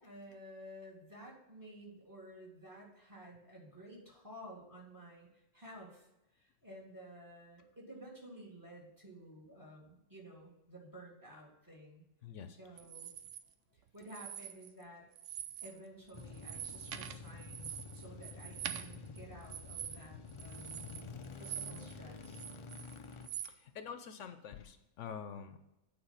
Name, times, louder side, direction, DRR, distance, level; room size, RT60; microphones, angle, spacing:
voice 1, 0.0-6.1 6.3-12.0 12.5-13.1 13.7-15.1 15.6-21.0 21.4-22.4, right 1 dB, 15° right, -2 dB, 2.0 m, -53 dB
voice 2, 12.2-12.6 21.1-21.2 23.4-25.6, left 7 dB, 75° left, 9 dB, 1.0 m, -47 dB
sound 1, 12.8-13.4 14.0-14.8 15.1-15.8 16.1-21.9 22.2-23.5, right 10 dB, 75° right, 0.9 m, -45 dB
sound 2, 16.1-23.3, left 4 dB, 50° left, 0.3 m, -49 dB
8.9 x 4.2 x 5.6 m, 0.92 s
omnidirectional pair, 1.3 m